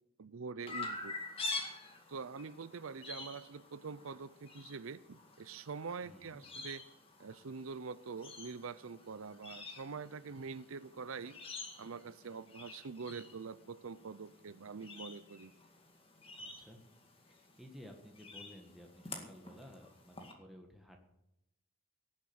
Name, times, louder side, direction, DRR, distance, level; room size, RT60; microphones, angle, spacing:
voice 1, 0.2-1.2 2.1-6.8 7.2-11.4 11.8-15.5, right 5 dB, 75° right, 16 dB, 0.6 m, -45 dB
Chirp tweet, 0.7-20.3, left 3 dB, 25° left, 2.1 m, -48 dB
voice 2, 6.0-6.4 16.4-16.8 17.4-21.0, equal, ahead, 2 dB, 1.6 m, -55 dB
18.0 x 7.5 x 8.5 m, 0.84 s
head